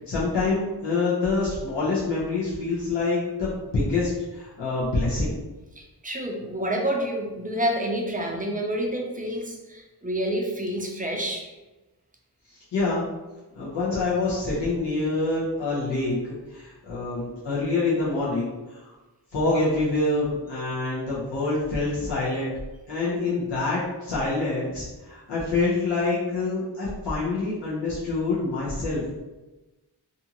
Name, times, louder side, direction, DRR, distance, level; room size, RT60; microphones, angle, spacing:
voice 1, 0.1-5.3 12.5-13.1 13.5-16.2 16.5-18.8 19.3-22.5 22.9-29.2, left 3 dB, 85° left, -9 dB, 0.8 m, -26 dB
voice 2, 5.8-11.5, right 1 dB, 20° right, 0 dB, 0.5 m, -28 dB
2.6 x 2.5 x 2.8 m, 1.1 s
wide cardioid pair, 50°, 41 cm